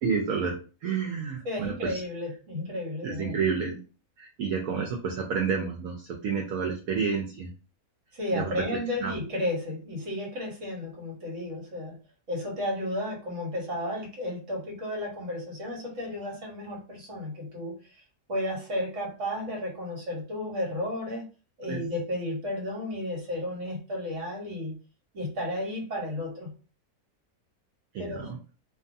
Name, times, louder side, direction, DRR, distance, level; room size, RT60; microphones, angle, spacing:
voice 1, 0.0-2.0 3.0-3.8 4.2-7.5 8.3-8.7 9.0-9.1 21.7-21.8 27.9-28.4, right 6 dB, 75° right, 1 dB, 1.0 m, -30 dB
voice 2, 1.4-3.4 8.1-12.0 12.3-17.8 18.3-21.2 21.6-24.7 25.1-26.5 28.0-28.3, left 1 dB, 55° right, -1 dB, 1.3 m, -33 dB
2.6 x 2.4 x 2.5 m, 0.35 s
omnidirectional pair, 1.6 m